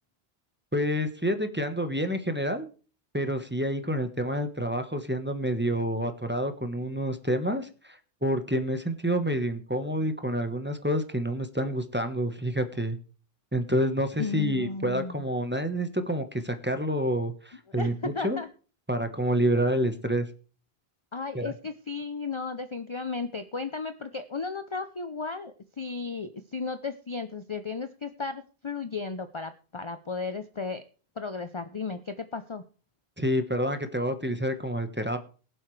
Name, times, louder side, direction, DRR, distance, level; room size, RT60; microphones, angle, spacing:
voice 1, 0.7-2.7 3.1-13.0 13.5-18.4 18.9-20.3 21.3-21.5 33.2-35.2, equal, 10° right, 8 dB, 1.2 m, -28 dB
voice 2, 14.2-15.3 17.7-18.5 21.1-30.8 31.2-32.6, left 4 dB, 35° left, 10 dB, 0.6 m, -34 dB
22.0 x 7.7 x 3.3 m, 0.38 s
omnidirectional pair, 1.1 m